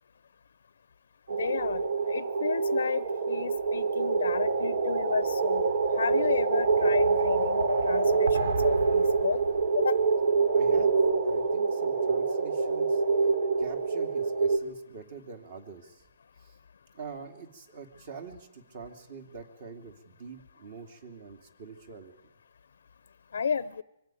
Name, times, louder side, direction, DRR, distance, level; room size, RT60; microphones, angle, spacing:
sound 1, 1.3-14.6, right 4 dB, 65° right, 3.1 m, -26 dB
voice 1, 1.4-9.4 9.7-10.1 23.3-23.8, left 6 dB, 70° left, 16 dB, 0.8 m, -32 dB
voice 2, 10.5-10.9 11.2-13.0 13.6-16.0 16.4-16.5 16.9-22.1, right 5 dB, 40° right, 5 dB, 2.9 m, -45 dB
24.5 x 17.0 x 9.3 m, 0.86 s
hypercardioid pair, 170°, 0 cm